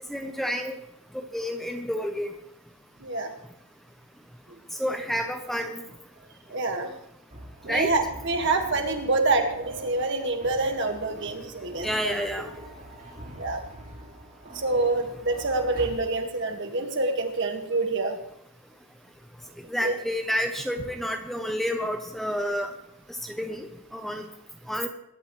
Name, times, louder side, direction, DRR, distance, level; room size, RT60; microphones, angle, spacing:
voice 1, 0.1-0.7 1.1-2.3 4.7-5.8 7.7-7.9 11.8-12.5 19.7-22.7 23.2-24.3 24.7-24.9, equal, ahead, 5 dB, 0.8 m, -29 dB
voice 2, 3.0-3.3 4.5-4.6 6.5-6.9 7.6-12.2 13.4-13.6 14.5-18.1 19.8-20.0, right 3 dB, 55° right, 4 dB, 1.9 m, -26 dB
sound 1, 7.3-15.9, equal, 40° right, 3.5 m, -44 dB
22.0 x 11.5 x 3.2 m, 0.81 s
head